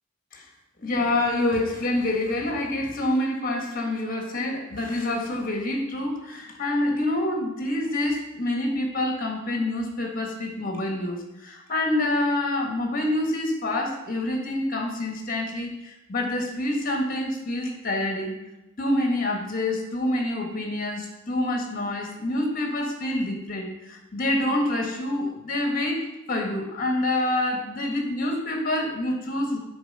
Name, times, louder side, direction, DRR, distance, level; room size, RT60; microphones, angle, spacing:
voice 1, 0.8-18.4 18.8-29.6, left 1 dB, 40° left, 2 dB, 1.6 m, -27 dB
7.9 x 4.6 x 5.4 m, 0.94 s
head